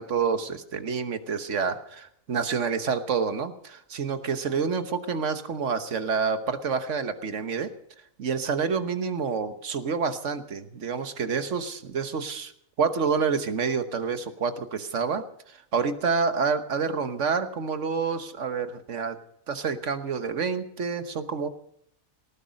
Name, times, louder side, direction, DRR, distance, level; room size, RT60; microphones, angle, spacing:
voice 1, 0.0-7.7 8.2-12.5 12.8-19.2 19.5-21.5, right 5 dB, 60° right, 10 dB, 1.5 m, -28 dB
18.5 x 14.5 x 5.2 m, 0.71 s
omnidirectional pair, 1.4 m